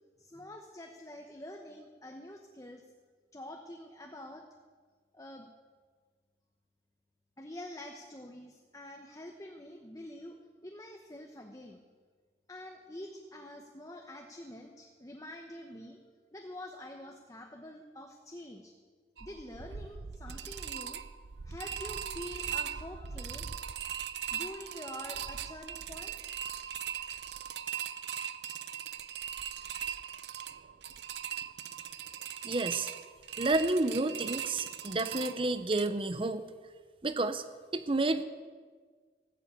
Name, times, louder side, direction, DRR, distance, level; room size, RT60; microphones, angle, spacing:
voice 1, 0.2-2.8 3.3-4.5 5.1-5.5 7.4-10.4 10.6-11.8 12.5-16.0 16.3-18.7 19.2-21.0 21.4-23.7 24.3-26.1 27.8-28.0, left 1 dB, 20° left, 3 dB, 1.0 m, -46 dB
sound 1, 19.2-35.9, right 9 dB, 75° right, 0.6 m, -40 dB
voice 2, 32.4-32.9 33.4-36.4 37.0-37.4 37.7-38.2, right 2 dB, 30° right, 11 dB, 0.8 m, -30 dB
18.0 x 8.1 x 8.3 m, 1.5 s
head